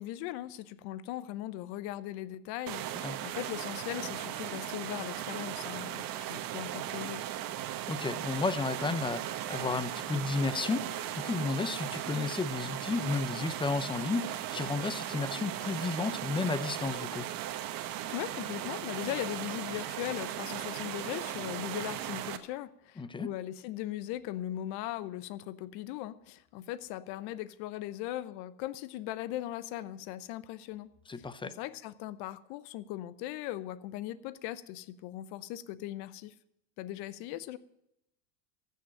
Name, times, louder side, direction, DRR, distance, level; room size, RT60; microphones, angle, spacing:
voice 1, 0.0-7.2 18.1-30.9 31.2-36.3 36.8-37.6, left 14 dB, 55° left, 15 dB, 0.9 m, -39 dB
sound 1, 2.7-22.4, right 12 dB, 45° right, 1.3 m, -37 dB
voice 2, 7.9-17.3 23.0-23.3 31.1-31.5, left 4 dB, 10° left, 15 dB, 0.5 m, -33 dB
15.0 x 6.6 x 8.7 m, 0.82 s
hypercardioid pair, 100°, 48 cm